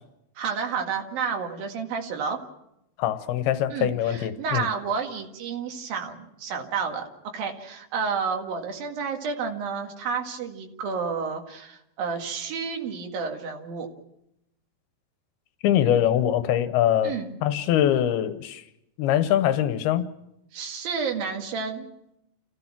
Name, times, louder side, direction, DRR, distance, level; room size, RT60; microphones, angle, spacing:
voice 1, 0.4-2.4 3.7-13.9 17.0-17.4 20.5-21.9, right 5 dB, 70° right, 2 dB, 3.7 m, -30 dB
voice 2, 3.0-4.7 15.6-17.1 17.4-18.6 19.0-20.1, left 11 dB, 85° left, 11 dB, 2.9 m, -23 dB
29.5 x 16.0 x 6.0 m, 0.84 s
omnidirectional pair, 4.4 m